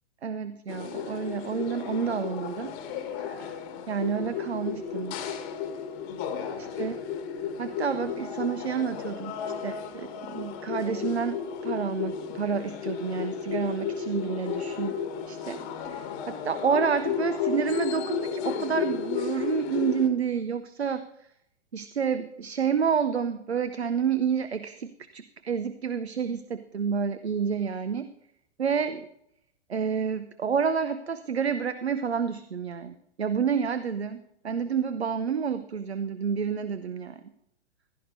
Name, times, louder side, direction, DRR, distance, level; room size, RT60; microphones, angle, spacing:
voice 1, 0.2-2.7 3.2-3.5 3.9-5.2 6.6-7.0 7.6-9.4 9.6-15.0 15.3-21.3 21.7-28.1 28.6-29.1 29.7-37.3, right 6 dB, 75° right, 12 dB, 0.7 m, -29 dB
sound 1, 0.7-20.1, left 7 dB, 30° left, 1.3 m, -33 dB
15.5 x 12.0 x 2.7 m, 0.75 s
figure-of-eight pair, 110°, 32 cm